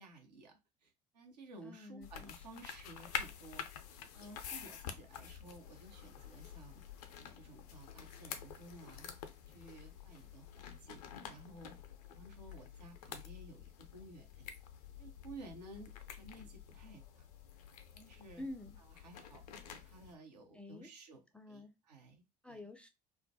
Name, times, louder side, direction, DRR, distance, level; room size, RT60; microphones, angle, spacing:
voice 1, 0.0-3.7 4.1-6.8 7.2-9.1 9.5-11.7 12.1-14.5 15.0-17.3 17.9-18.4 18.8-22.6, right 2 dB, 75° right, 0.8 m, -55 dB
voice 2, 1.6-2.3 18.4-18.8 20.5-20.9 21.3-21.7 22.4-22.9, left 2 dB, 5° left, 0.4 m, -48 dB
sound 1, 2.0-20.2, left 8 dB, 65° left, 0.5 m, -49 dB
2.3 x 2.1 x 2.6 m
figure-of-eight pair, 60°, 21 cm